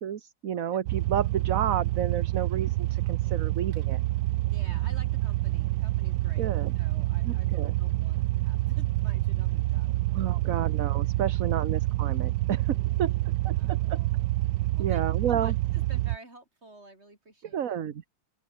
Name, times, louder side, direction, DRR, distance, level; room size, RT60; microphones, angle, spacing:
voice 1, 0.0-4.0 6.4-6.7 7.3-7.7 10.1-12.6 13.0-13.1 13.4-14.0 14.8-15.5 17.5-18.0, right 9 dB, 50° right, 1.3 m, -31 dB
sound 1, 0.9-16.2, right 17 dB, 85° right, 1.3 m, -27 dB
voice 2, 4.5-10.7 12.4-14.3 14.8-17.7, right 1 dB, 35° right, 6.7 m, -52 dB
open air
omnidirectional pair, 2.0 m